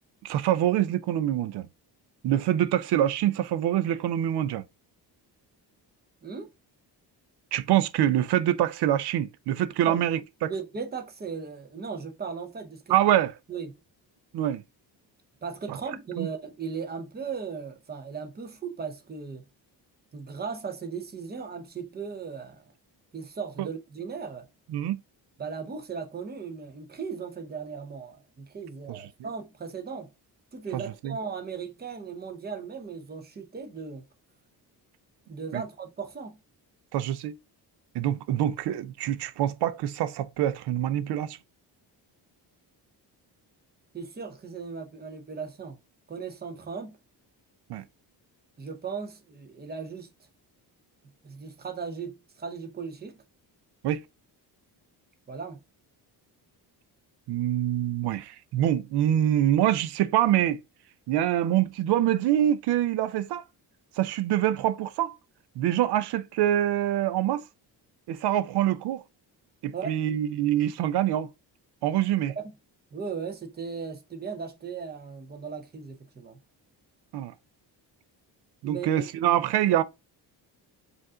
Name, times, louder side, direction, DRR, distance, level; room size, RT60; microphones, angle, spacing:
voice 1, 0.2-1.7 2.2-4.6 7.5-10.5 12.9-13.3 14.3-14.6 15.7-15.8 16.2-16.3 24.7-25.0 28.9-29.1 30.7-31.1 35.5-35.6 36.9-37.4 37.9-41.4 47.7-47.8 53.8-54.0 57.3-60.6 61.1-63.4 64.0-65.2 65.6-67.4 68.1-69.0 69.6-71.3 71.8-72.3 77.1-77.3 78.6-79.8, right 12 dB, 70° right, 0.5 m, -25 dB
voice 2, 10.4-12.9 13.5-13.8 15.4-19.4 20.1-22.7 23.1-24.5 25.4-30.1 30.5-34.1 35.3-36.4 43.9-45.8 46.1-47.0 48.6-50.1 51.2-53.2 55.3-55.6 69.7-70.0 72.4-72.5 72.9-76.4 78.6-79.4, right 5 dB, 25° right, 0.7 m, -37 dB
5.1 x 2.5 x 3.6 m
cardioid pair, 155°, 41 cm